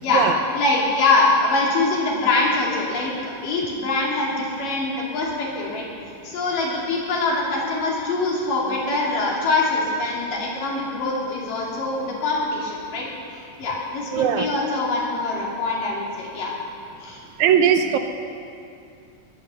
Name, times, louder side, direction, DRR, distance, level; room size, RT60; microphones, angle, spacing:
voice 1, 0.5-5.8 6.2-13.1 13.3-16.5 17.0-17.2, left 3 dB, 90° left, -3 dB, 4.3 m, -23 dB
voice 2, 14.1-14.5 17.4-18.0, right 8 dB, 75° right, 7 dB, 1.9 m, -19 dB
20.5 x 8.6 x 6.9 m, 2.5 s
omnidirectional pair, 3.7 m